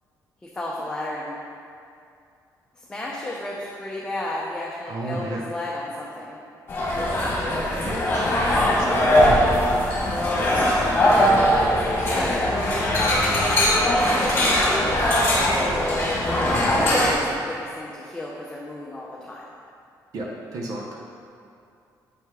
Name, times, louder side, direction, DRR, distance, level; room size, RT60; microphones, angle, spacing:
voice 1, 0.5-1.4 2.8-6.4 10.0-12.5 14.1-14.5 15.3-19.4, left 1 dB, 10° left, -4 dB, 0.7 m, -32 dB
voice 2, 4.9-5.4 7.8-8.4 8.7-9.2 20.1-21.0, right 2 dB, 60° right, -2 dB, 0.9 m, -33 dB
sound 1, 6.7-17.1, left 1 dB, 30° left, 1.5 m, -20 dB
7.8 x 6.1 x 3.7 m, 2.5 s
cardioid pair, 160°, 7 cm